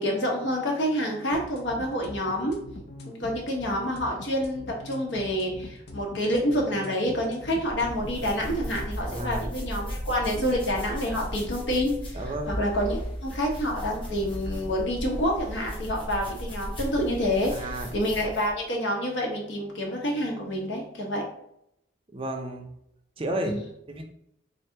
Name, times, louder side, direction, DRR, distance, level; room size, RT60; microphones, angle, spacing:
voice 1, 0.0-2.6 3.1-12.2 12.6-21.2 23.4-23.6, equal, 70° left, 0 dB, 1.0 m, -28 dB
sound 1, 1.3-8.9, left 2 dB, 55° left, 0.6 m, -42 dB
sound 2, 7.6-18.6, equal, 30° left, 1.0 m, -36 dB
voice 2, 9.1-9.5 12.1-12.6 17.5-17.9 22.1-22.7 23.2-23.6 23.9-24.0, right 1 dB, 30° right, 3 dB, 0.5 m, -32 dB
3.8 x 3.3 x 2.8 m, 0.77 s
head